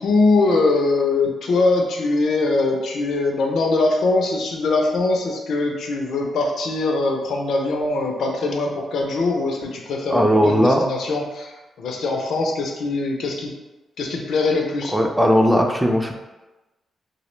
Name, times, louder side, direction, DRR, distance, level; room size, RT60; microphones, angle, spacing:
voice 1, 0.0-13.5 14.0-15.0, left 3 dB, 80° left, 2 dB, 0.4 m, -22 dB
voice 2, 10.1-10.9 14.9-16.2, equal, 5° right, 2 dB, 0.3 m, -17 dB
2.3 x 2.0 x 3.0 m, 1.1 s
cardioid pair, 70°, 0 cm